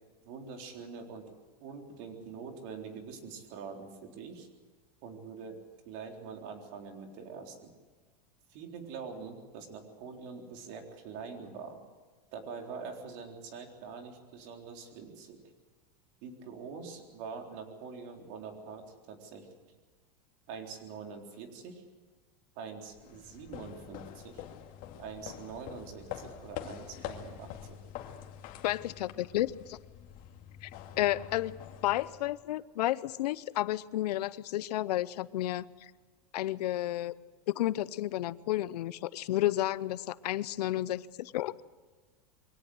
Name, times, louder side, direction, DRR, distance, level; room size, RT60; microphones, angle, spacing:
voice 1, 0.2-1.3 1.6-4.5 5.0-7.7 8.5-11.8 12.3-15.4 16.2-19.5 20.5-21.8 22.6-24.4 25.0-27.8, right 5 dB, 55° right, 4 dB, 3.9 m, -44 dB
sound 1, 22.9-32.5, left 10 dB, 45° left, 2.2 m, -46 dB
voice 2, 28.6-29.8 30.6-30.7 31.0-31.6 31.8-35.9 36.3-37.1 37.5-41.5, left 15 dB, 85° left, 19 dB, 0.7 m, -31 dB
23.0 x 17.5 x 8.0 m, 1.4 s
supercardioid pair, 140°, 20 cm